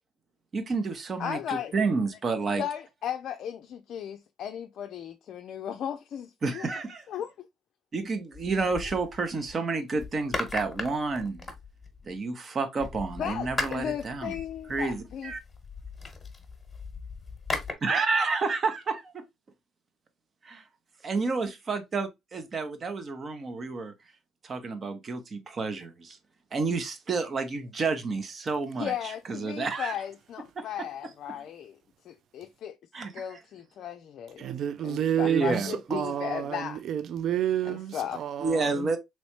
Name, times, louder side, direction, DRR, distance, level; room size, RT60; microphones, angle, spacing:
voice 1, 0.5-2.6 6.4-7.0 7.9-11.5 12.0-14.4 14.7-15.4 17.8-19.2 20.4-20.6 21.0-23.9 24.4-26.2 26.5-29.9 30.6-30.7 32.9-33.4 35.2-36.0 38.4-39.0, right 4 dB, 45° right, 0.8 m, -30 dB
voice 2, 1.2-1.7 2.6-6.7 7.1-7.3 13.2-15.3 28.8-31.8 32.1-32.7 33.1-34.5 34.8-36.8 37.7-38.2, left 9 dB, 60° left, 0.3 m, -36 dB
sound 1, 8.3-9.5 10.0-12.2 12.8-17.7, left 3 dB, 20° left, 1.1 m, -38 dB
voice 3, 34.4-38.9, right 10 dB, 60° right, 0.3 m, -30 dB
3.1 x 3.0 x 2.9 m
supercardioid pair, 65°, 0 cm